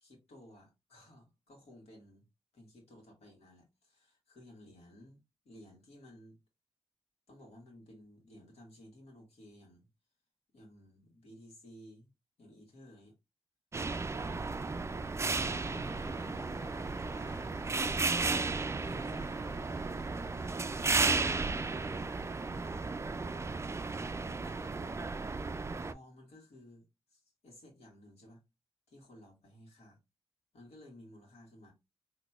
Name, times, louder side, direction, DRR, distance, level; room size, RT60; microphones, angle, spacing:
voice 1, 0.0-2.3 2.5-6.4 7.3-9.9 10.5-12.1 12.4-13.1 13.9-14.6 15.2-16.5 17.0-17.5 18.8-20.8 21.3-23.0 23.8-24.0 24.3-26.9 27.1-28.4 28.9-30.0 30.5-31.7, left 1 dB, 75° left, 1.7 m, -56 dB
sound 1, 13.7-25.9, right 3 dB, 25° right, 0.3 m, -34 dB
sound 2, 15.4-22.5, left 3 dB, 35° left, 0.7 m, -55 dB
4.0 x 2.8 x 2.3 m
cardioid pair, 55°, 11 cm